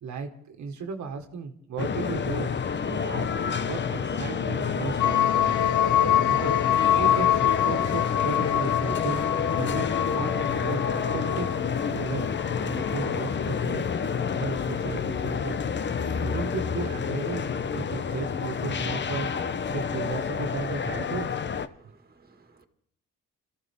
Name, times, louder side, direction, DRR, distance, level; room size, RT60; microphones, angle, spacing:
voice 1, 0.0-2.5 2.8-3.3 3.7-5.5 6.0-6.6 6.9-9.2 9.6-11.5 11.8-12.3 12.6-13.9 14.4-15.6 16.2-19.3 19.7-21.3, right 6 dB, 70° right, 1.7 m, -35 dB
sound 1, 1.8-21.7, left 6 dB, 35° left, 0.9 m, -29 dB
sound 2, 5.0-13.1, left 11 dB, 80° left, 0.8 m, -25 dB
voice 2, 18.9-19.8 21.7-22.7, right 3 dB, 30° right, 2.1 m, -54 dB
27.0 x 14.5 x 3.6 m
cardioid pair, 90°, 30 cm